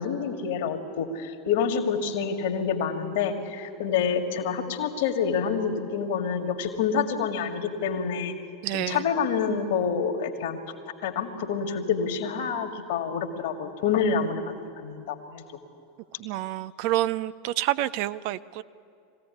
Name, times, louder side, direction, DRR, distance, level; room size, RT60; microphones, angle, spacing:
voice 1, 0.0-8.4 8.7-10.6 11.0-15.4, left 6 dB, 55° left, 6 dB, 2.0 m, -27 dB
voice 2, 8.6-9.0 16.2-18.6, right 15 dB, 50° right, 16 dB, 0.5 m, -28 dB
22.5 x 16.0 x 9.6 m, 2.5 s
figure-of-eight pair, 85°, 0 cm